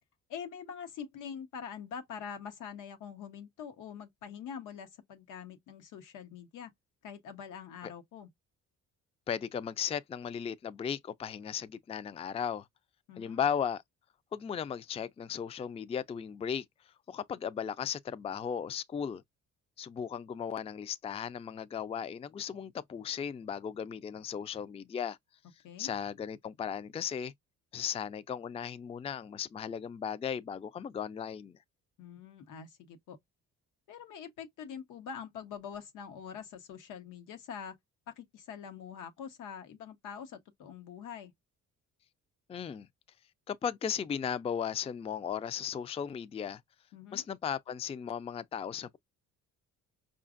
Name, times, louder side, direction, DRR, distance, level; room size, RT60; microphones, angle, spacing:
voice 1, 0.3-6.7 7.0-8.3 13.1-13.4 25.6-25.9 32.0-33.2 33.9-37.8 38.1-41.3 46.9-47.2, left 7 dB, 85° left, 1.0 m, -44 dB
voice 2, 9.3-12.7 13.2-13.8 14.3-16.7 17.1-19.2 19.8-25.2 25.8-27.3 27.7-31.6 42.5-42.9 43.5-46.6 47.1-49.0, left 8 dB, 20° left, 0.3 m, -36 dB
5.0 x 2.4 x 2.4 m
cardioid pair, 90°, 30 cm